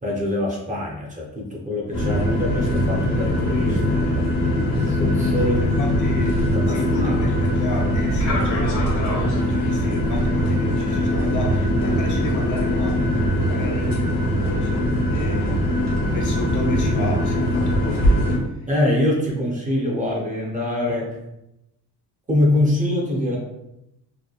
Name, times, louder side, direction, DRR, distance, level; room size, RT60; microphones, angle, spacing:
voice 1, 0.0-4.4 4.8-5.6 6.4-7.2 18.7-21.2 22.3-23.4, left 1 dB, 20° right, -2 dB, 0.5 m, -24 dB
sound 1, 1.9-18.4, equal, 80° left, 0.9 m, -21 dB
voice 2, 5.4-13.2 13.5-15.7 16.1-18.6, left 1 dB, 50° left, 0 dB, 0.6 m, -32 dB
2.9 x 2.1 x 2.3 m, 0.89 s
cardioid pair, 125°, 39 cm